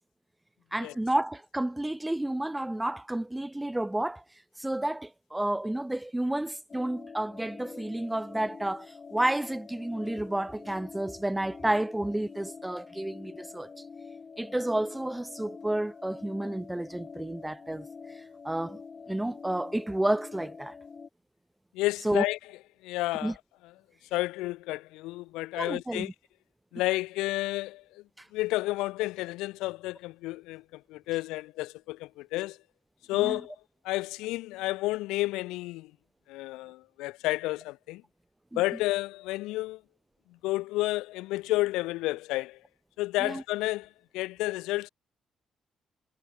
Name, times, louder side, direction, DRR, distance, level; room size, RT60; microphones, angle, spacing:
voice 1, 0.7-4.2 4.6-13.7 14.4-17.9 18.2-18.8 19.1-20.7 22.0-22.2 23.2-23.3 25.5-26.1 28.2-28.3 33.2-33.4 38.5-38.6 43.2-43.4, right 1 dB, 10° right, 0.7 m, -31 dB
sound 1, 6.7-21.1, left 5 dB, 40° left, 7.7 m, -46 dB
voice 2, 21.7-22.4 22.8-23.3 24.1-26.1 26.7-28.0 28.3-32.6 33.1-33.5 33.8-35.9 36.3-38.0 38.6-39.8 40.4-42.6 43.0-44.9, left 19 dB, 65° left, 1.0 m, -31 dB
figure-of-eight pair, 40°, 0 cm